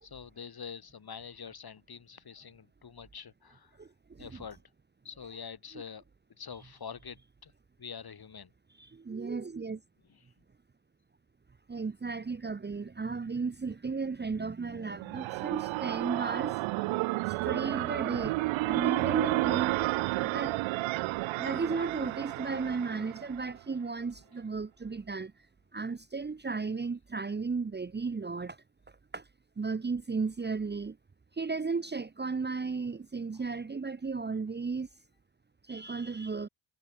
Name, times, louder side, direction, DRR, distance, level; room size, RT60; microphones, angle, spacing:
voice 1, 0.0-3.8 4.2-4.6 5.0-6.0 6.4-7.5 7.8-8.5 10.1-10.2 33.3-33.4, left 6 dB, 50° left, 4.0 m, -45 dB
voice 2, 3.8-4.4 8.8-9.8 11.7-16.6 17.3-18.4 18.6-20.6 21.4-25.3 25.7-28.6 29.1-29.2 29.6-31.0 31.3-34.9 35.7-36.5, right 4 dB, 20° right, 0.9 m, -34 dB
sound 1, 14.7-23.6, right 20 dB, 75° right, 0.6 m, -31 dB
supercardioid pair, 55°, 48 cm